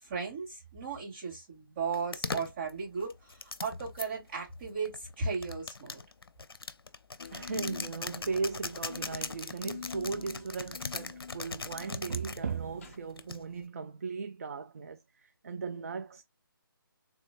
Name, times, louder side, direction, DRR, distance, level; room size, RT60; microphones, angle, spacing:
voice 1, 0.0-6.0, right 5 dB, 25° right, 2.5 m, -36 dB
sound 1, 1.9-4.1 4.9-12.4 13.2-13.6, left 4 dB, 90° left, 0.5 m, -40 dB
sound 2, 7.2-13.0, left 5 dB, 35° left, 0.6 m, -47 dB
voice 2, 7.3-16.2, right 5 dB, 40° right, 0.4 m, -37 dB
3.7 x 3.1 x 2.4 m
figure-of-eight pair, 160°, 12 cm